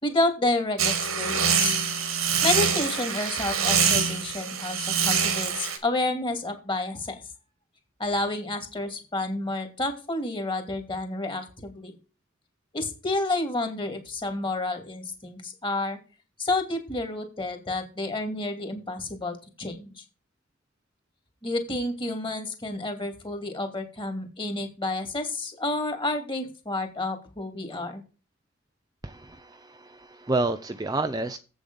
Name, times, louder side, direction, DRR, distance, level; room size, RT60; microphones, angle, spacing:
voice 1, 0.0-1.8 2.4-7.2 8.0-11.9 12.7-16.0 16.4-20.0 21.4-28.0, left 2 dB, 25° left, 6 dB, 2.5 m, -30 dB
sound 1, 0.8-5.8, right 6 dB, 90° right, 2.3 m, -25 dB
voice 2, 29.0-31.4, right 2 dB, 20° right, 8 dB, 0.6 m, -29 dB
8.2 x 7.2 x 5.4 m, 0.33 s
head